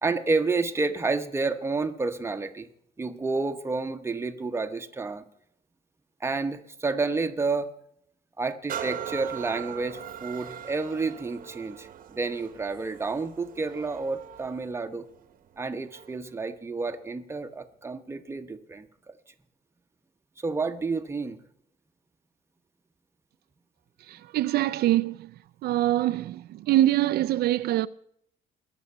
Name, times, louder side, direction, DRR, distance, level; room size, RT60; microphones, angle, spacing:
voice 1, 0.0-2.7 3.0-5.2 6.2-7.7 8.4-15.1 15.6-19.1 20.4-21.4, right 3 dB, 15° right, 0.9 m, -30 dB
sound 1, 8.7-16.3 16.9-17.0, right 10 dB, 55° right, 1.0 m, -41 dB
voice 2, 24.1-25.3 25.6-27.9, right 14 dB, 75° right, 0.4 m, -24 dB
21.0 x 7.1 x 5.4 m
cardioid pair, 135°, 17 cm